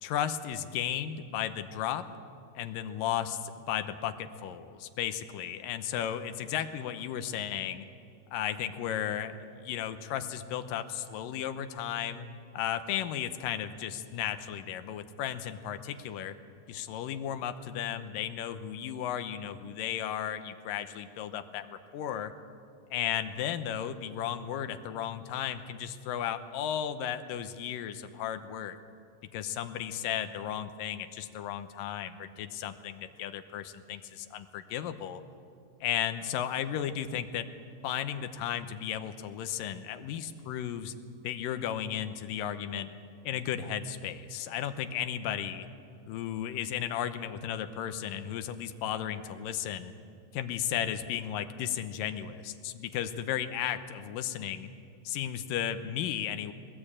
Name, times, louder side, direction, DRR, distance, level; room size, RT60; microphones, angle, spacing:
voice 1, 0.0-2.0 2.6-7.9 8.3-12.2 12.5-16.3 16.7-22.3 22.9-28.8 29.3-35.2 35.8-37.5 37.8-40.9 41.2-42.9 43.2-45.7 46.1-49.9 50.3-54.7 55.0-56.5, left 10 dB, 85° left, 9 dB, 2.6 m, -34 dB
21.0 x 20.0 x 8.6 m, 2.4 s
omnidirectional pair, 3.9 m